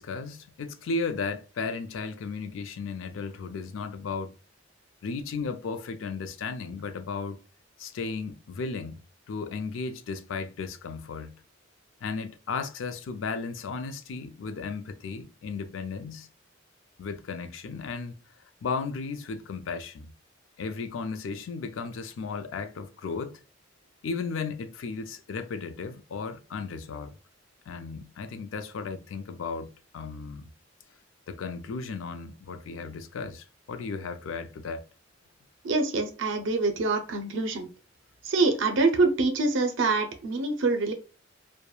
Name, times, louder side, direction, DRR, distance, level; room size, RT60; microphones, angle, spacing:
voice 1, 0.0-4.3 5.0-7.4 7.8-9.0 9.3-11.4 12.0-16.3 17.0-18.1 18.6-20.1 20.6-23.3 24.0-27.1 27.7-30.5 31.3-34.8, left 4 dB, 85° left, 0.4 m, -35 dB
voice 2, 35.6-37.7 38.2-40.9, right 3 dB, 70° right, 0.4 m, -25 dB
3.0 x 2.1 x 2.2 m
head